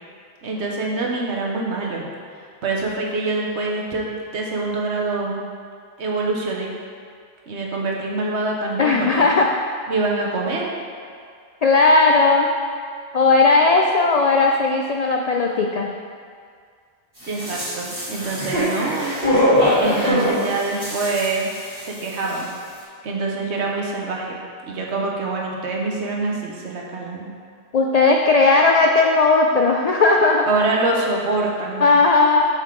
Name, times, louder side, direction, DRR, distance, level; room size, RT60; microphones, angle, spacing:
voice 1, 0.4-2.1 2.6-4.1 4.3-5.5 6.0-6.7 7.5-9.3 9.9-10.7 17.2-19.2 19.8-21.5 21.8-22.5 23.0-24.4 24.7-27.3 30.5-31.9, right 3 dB, 70° right, -1 dB, 1.2 m, -25 dB
voice 2, 8.8-9.5 11.6-12.5 13.1-15.9 27.7-30.5 31.8-32.5, left 3 dB, 65° left, 1 dB, 0.3 m, -16 dB
sound 1, 17.2-22.0 22.3-22.4, equal, 35° right, 2.1 m, -22 dB
7.5 x 5.4 x 3.7 m, 2.1 s
omnidirectional pair, 1.2 m